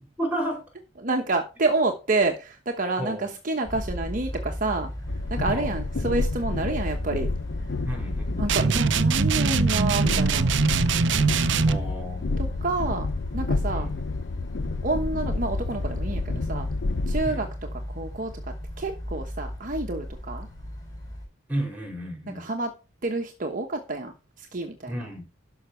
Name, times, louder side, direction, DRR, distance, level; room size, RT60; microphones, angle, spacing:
voice 1, 0.2-0.6 3.0-3.2 5.5-5.7 7.9-8.4 11.6-12.3 13.7-13.9 17.2-17.4 21.5-22.4 24.9-25.2, right 1 dB, 10° right, 4.5 m, -32 dB
voice 2, 1.0-4.9 5.3-7.3 8.4-10.5 12.4-13.1 13.3-13.9 14.8-16.7 17.1-17.5 17.9-18.3 18.8-20.5 22.3-22.7 23.0-25.1, right 2 dB, 45° right, 1.2 m, -28 dB
sound 1, 3.6-21.3, equal, 20° left, 5.9 m, -37 dB
Train, 5.1-17.3, left 3 dB, 60° left, 0.6 m, -30 dB
sound 2, 8.5-11.9, right 5 dB, 65° right, 0.6 m, -22 dB
12.0 x 5.9 x 4.5 m
head